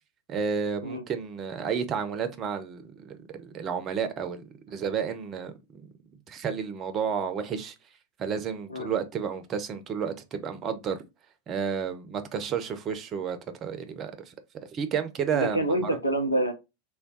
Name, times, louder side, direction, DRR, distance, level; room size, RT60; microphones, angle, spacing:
voice 1, 0.3-5.9 6.3-7.7 8.2-11.0 11.5-14.3 14.7-15.9, right 7 dB, 30° right, 0.6 m, -31 dB
voice 2, 15.3-16.5, right 1 dB, 80° left, 0.7 m, -27 dB
3.4 x 2.3 x 3.8 m
figure-of-eight pair, 90°, 0 cm